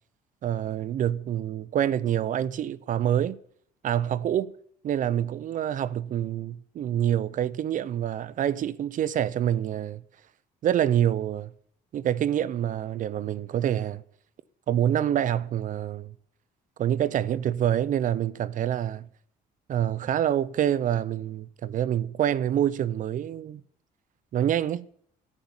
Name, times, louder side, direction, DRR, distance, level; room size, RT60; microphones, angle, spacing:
voice 1, 0.4-3.4 3.8-4.5 4.8-10.0 10.6-11.5 11.9-14.0 14.7-16.1 16.8-19.1 19.7-23.6 24.3-24.9, right 10 dB, 50° right, 0.6 m, -26 dB
10.5 x 8.6 x 9.8 m
cardioid pair, 110°, 17 cm